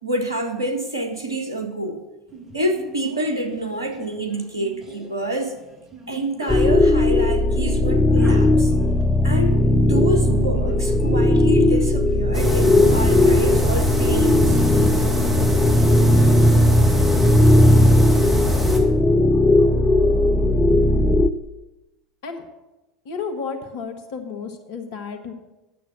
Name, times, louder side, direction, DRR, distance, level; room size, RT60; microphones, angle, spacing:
voice 1, 0.0-2.0 2.5-5.5 6.1-8.7 9.2-15.1, right 1 dB, 80° right, 1.2 m, -27 dB
Sneeze, 2.3-12.3, right 3 dB, 25° right, 1.8 m, -42 dB
sound 1, 6.5-21.3, left 1 dB, 15° left, 0.5 m, -17 dB
sound 2, 12.3-18.8, equal, 10° right, 2.2 m, -23 dB
voice 2, 23.0-25.3, left 5 dB, 55° left, 1.4 m, -32 dB
9.4 x 7.2 x 7.3 m
figure-of-eight pair, 75°, 2 cm